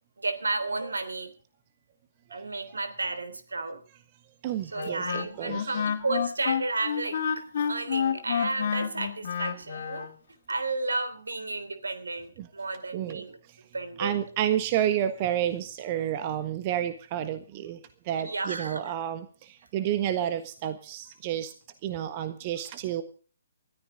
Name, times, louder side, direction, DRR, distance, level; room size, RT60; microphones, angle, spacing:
voice 1, 0.2-1.3 2.3-3.8 4.6-10.1 10.5-13.4 13.7-14.2 18.2-19.0, right 3 dB, 70° right, 10 dB, 3.4 m, -33 dB
voice 2, 4.4-5.8 12.4-12.5 12.9-13.2 14.0-17.8 18.1-21.5 21.8-23.0, right 11 dB, 30° right, 10 dB, 1.4 m, -30 dB
Wind instrument woodwind instrument, 4.7-10.1, left 7 dB, 45° left, 3.0 m, -29 dB
21.0 x 14.0 x 3.9 m, 0.39 s
figure-of-eight pair, 135°, 0 cm